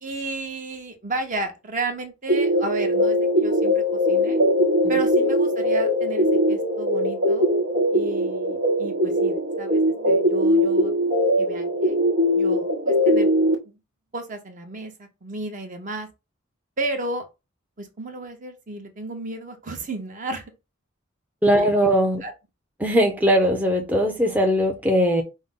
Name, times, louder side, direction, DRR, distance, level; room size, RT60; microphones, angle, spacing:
voice 1, 0.0-4.4 4.9-7.5 7.9-10.9 11.4-12.0 12.3-13.3 13.6-13.8 14.1-16.1 16.8-17.3 17.8-20.5 21.5-22.3, right 2 dB, 40° right, 0.9 m, -33 dB
sound 1, 2.3-13.6, equal, 70° right, 1.1 m, -21 dB
voice 2, 21.4-22.2 22.8-25.2, equal, 10° right, 0.5 m, -20 dB
5.3 x 2.1 x 3.6 m
head